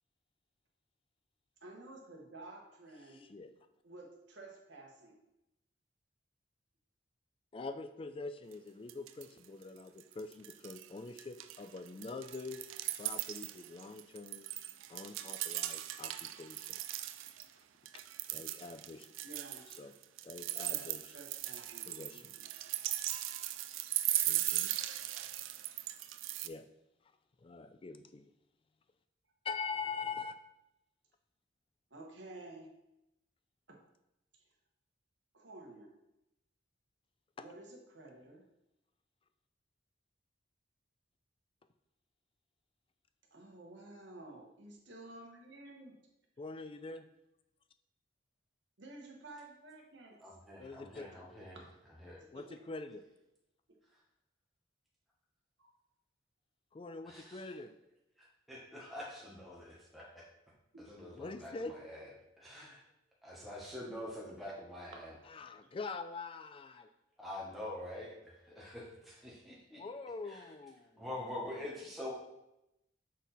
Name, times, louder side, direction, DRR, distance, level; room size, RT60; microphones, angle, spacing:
voice 1, 1.6-3.3 3.8-5.2 19.2-19.6 20.7-20.9 21.1-22.5 31.9-32.7 33.7-33.8 35.3-35.9 37.4-38.4 43.3-46.0 48.8-50.2 52.2-52.6 55.6-55.7 60.7-61.1, right 2 dB, 65° right, 0 dB, 1.3 m, -52 dB
voice 2, 3.1-3.5 7.5-12.6 13.0-14.5 14.9-16.8 18.3-19.1 19.8-19.9 20.2-21.0 21.9-22.4 24.3-24.7 26.4-26.6 27.4-28.2 29.4-30.4 46.4-47.0 50.5-51.1 52.3-53.0 56.7-57.7 61.1-61.7 65.3-66.9 69.8-71.1, left 4 dB, 30° left, 9 dB, 0.3 m, -44 dB
sound 1, 8.5-8.6 8.9-9.5 9.8-10.9 11.2-17.5 17.9-26.5, right 14 dB, 90° right, 0.4 m, -38 dB
voice 3, 50.2-51.6 52.0-52.2 57.0-57.5 58.2-60.3 60.9-62.8 63.2-65.1 66.7-66.8 67.2-69.8 70.2-70.5 71.0-72.1, left 1 dB, ahead, -4 dB, 1.0 m, -46 dB
6.3 x 4.1 x 4.0 m, 0.89 s
head